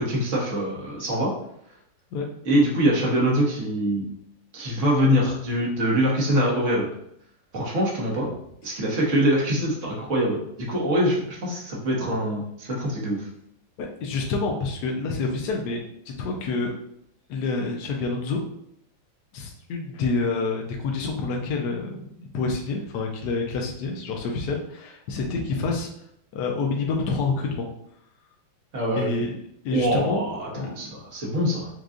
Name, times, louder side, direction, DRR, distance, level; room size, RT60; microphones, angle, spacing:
voice 1, 0.0-1.3 2.4-4.1 4.5-6.9 7.5-8.3 8.6-13.3 28.7-29.1 29.7-31.7, equal, 45° right, -4 dB, 1.2 m, -24 dB
voice 2, 13.8-15.8 16.2-16.7 17.3-18.4 19.3-25.9 26.3-27.7 29.0-29.3 29.6-30.9, left 3 dB, 70° left, 1 dB, 1.1 m, -28 dB
6.3 x 2.3 x 2.4 m, 0.73 s
omnidirectional pair, 2.1 m